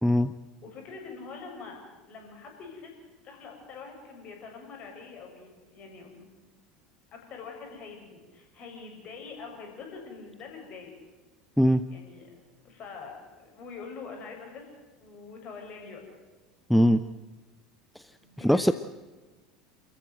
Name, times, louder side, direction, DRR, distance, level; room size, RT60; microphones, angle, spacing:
voice 1, 0.0-0.3 11.6-11.8 16.7-17.0 18.4-18.7, equal, ahead, 12 dB, 0.7 m, -21 dB
voice 2, 0.6-1.8 2.1-6.3 7.1-10.9 11.9-12.4 12.6-14.6 15.0-16.0 18.2-18.7, left 5 dB, 40° left, 2 dB, 7.4 m, -44 dB
28.5 x 14.5 x 7.9 m, 1.2 s
figure-of-eight pair, 70°, 3 cm